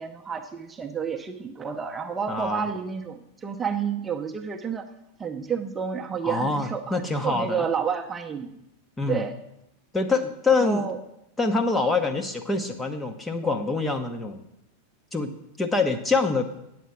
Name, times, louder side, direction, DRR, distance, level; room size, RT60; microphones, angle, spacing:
voice 1, 0.0-4.9 5.2-8.6 9.1-9.4 10.6-11.0, right 6 dB, 15° right, 4 dB, 0.8 m, -30 dB
voice 2, 2.3-2.7 6.2-7.6 9.0-9.3 9.9-10.9 11.4-14.4 15.1-15.3 15.6-16.4, left 3 dB, 10° left, 6 dB, 0.9 m, -25 dB
9.2 x 7.7 x 5.9 m, 0.83 s
figure-of-eight pair, 90°, 0 cm